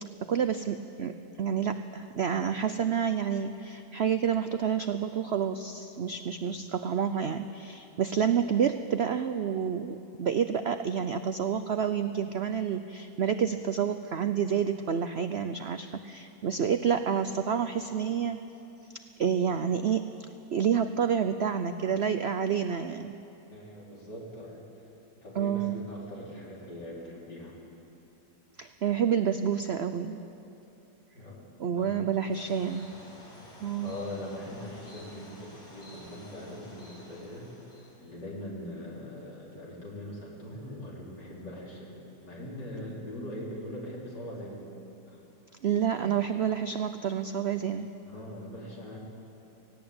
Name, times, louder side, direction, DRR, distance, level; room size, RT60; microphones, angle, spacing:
voice 1, 0.2-18.4 19.2-20.0 20.5-23.1 25.4-25.8 28.6-30.2 31.6-32.9 33.6-33.9 45.6-47.9, right 7 dB, 80° right, 9 dB, 0.5 m, -29 dB
voice 2, 23.5-24.6 25.2-27.5 31.1-31.4 31.7-32.0 33.8-37.5 38.0-41.9 42.2-44.7 45.1-45.2 45.9-46.1 48.0-49.0, left 1 dB, 75° left, -5 dB, 4.9 m, -41 dB
sound 1, 32.3-38.0, left 1 dB, 55° left, 4.1 m, -51 dB
18.0 x 17.5 x 8.7 m, 2.8 s
omnidirectional pair, 1.9 m